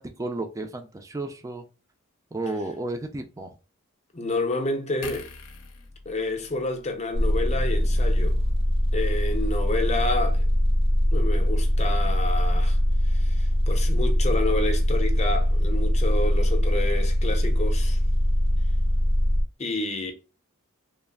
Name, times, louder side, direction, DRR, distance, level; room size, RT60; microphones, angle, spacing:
voice 1, 0.0-1.6 2.3-3.6, right 2 dB, 15° right, 0.4 m, -33 dB
voice 2, 4.1-5.3 6.0-8.4 8.9-10.4 11.1-12.8 13.0-18.0 19.6-20.1, left 2 dB, 30° left, 0.6 m, -29 dB
sound 1, 5.0-8.4 8.7-8.9, left 4 dB, 80° left, 0.6 m, -45 dB
sound 2, 7.1-19.4, left 1 dB, 60° right, 0.6 m, -22 dB
3.1 x 2.0 x 2.2 m
head